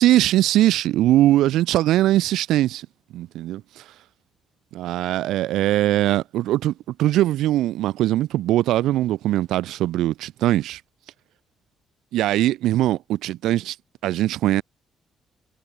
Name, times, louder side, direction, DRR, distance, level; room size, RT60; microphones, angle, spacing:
voice 1, 0.0-2.9 3.1-3.8 4.7-6.7 7.0-10.8 12.1-13.8 14.0-14.6, right 14 dB, 85° right, 0.6 m, -21 dB
cardioid pair, 90°, 0 cm